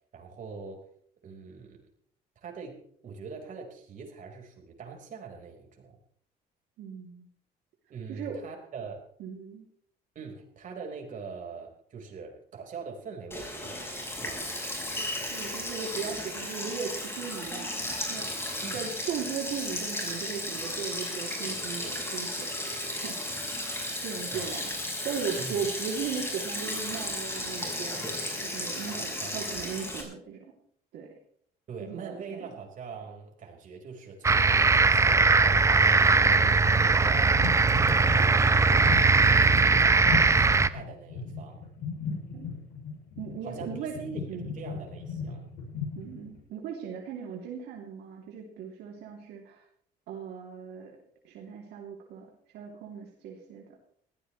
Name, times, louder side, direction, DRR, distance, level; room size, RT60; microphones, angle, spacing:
voice 1, 0.1-0.9 1.2-1.9 2.4-6.0 7.9-9.1 10.1-14.6 18.6-18.8 24.2-24.7 25.4-25.7 28.9-29.7 31.7-37.4 37.7-41.6 43.4-45.5, right 5 dB, 50° right, 1 dB, 4.8 m, -43 dB
voice 2, 6.8-7.3 8.1-8.4 9.2-9.6 15.3-18.5 18.7-22.5 22.9-23.2 24.0-24.7 25.0-30.4 30.9-31.1 31.8-32.5 42.3-42.5 43.2-43.9 44.3-44.5 45.9-49.6 50.1-51.0 51.2-52.3 52.5-53.7, right 6 dB, 80° right, -1 dB, 3.0 m, -37 dB
Sink (filling or washing), 13.3-30.0, left 1 dB, 15° left, 5.5 m, -34 dB
sound 1, 34.2-40.7, right 4 dB, 15° right, 0.6 m, -20 dB
sound 2, 36.3-46.4, left 5 dB, 80° left, 7.7 m, -38 dB
20.5 x 15.5 x 3.3 m, 0.62 s
cardioid pair, 110°, 17 cm